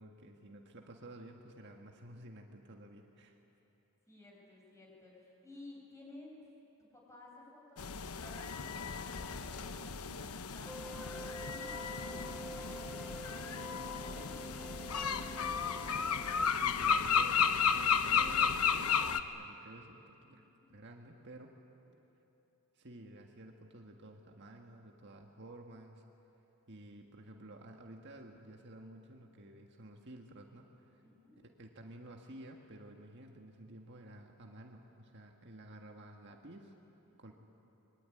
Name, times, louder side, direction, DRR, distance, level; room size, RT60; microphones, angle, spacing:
voice 1, 0.0-3.3 16.6-21.5 22.7-26.0 26.7-31.0 31.4-36.8 37.2-37.3, right 1 dB, 55° right, 2 dB, 1.8 m, -52 dB
voice 2, 4.1-6.4 6.8-15.7 20.3-20.7 31.0-31.3 37.1-37.3, left 2 dB, 15° left, -3 dB, 7.1 m, -56 dB
sound 1, 7.8-19.2, left 6 dB, 85° left, 1.0 m, -33 dB
sound 2, 10.7-16.5, right 1 dB, 5° right, 0.7 m, -48 dB
25.0 x 23.0 x 10.0 m, 3.0 s
head